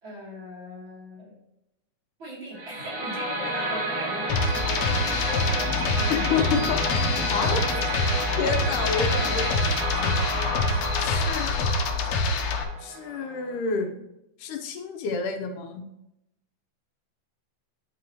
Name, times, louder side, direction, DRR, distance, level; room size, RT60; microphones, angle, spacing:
voice 1, 0.0-1.3 2.2-6.6 7.2-7.6 7.9-8.0, equal, 40° right, -6 dB, 3.5 m, -39 dB
sound 1, 2.5-13.6, right 1 dB, 70° right, 3.3 m, -31 dB
sound 2, 4.3-12.6, left 3 dB, 70° left, 1.9 m, -26 dB
voice 2, 6.1-7.6 8.4-9.5 10.0-11.5 12.8-13.9 14.4-15.8, left 5 dB, 90° left, 5 dB, 2.5 m, -29 dB
9.9 x 5.2 x 3.0 m, 0.85 s
omnidirectional pair, 3.5 m